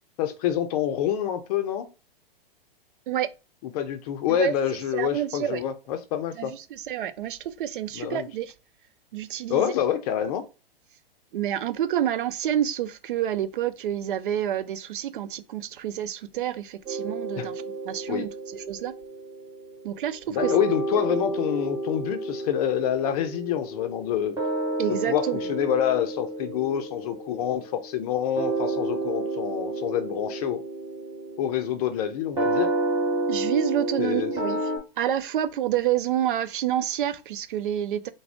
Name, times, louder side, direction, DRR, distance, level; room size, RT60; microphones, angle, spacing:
voice 1, 0.2-1.9 3.6-6.5 7.9-8.3 9.5-10.4 17.4-17.5 18.1-18.3 20.3-24.4 24.9-30.6 31.4-32.7 34.0-34.3, left 10 dB, 40° left, 0.5 m, -27 dB
voice 2, 4.9-5.6 6.4-8.5 9.1-9.7 11.3-18.9 19.8-20.5 20.9-21.1 24.8-25.4 33.3-34.7 35.0-38.1, right 11 dB, 60° right, 0.5 m, -28 dB
sound 1, 16.9-20.1 20.4-34.8, right 2 dB, 15° right, 1.2 m, -31 dB
3.5 x 2.0 x 3.5 m
hypercardioid pair, 110°, 29 cm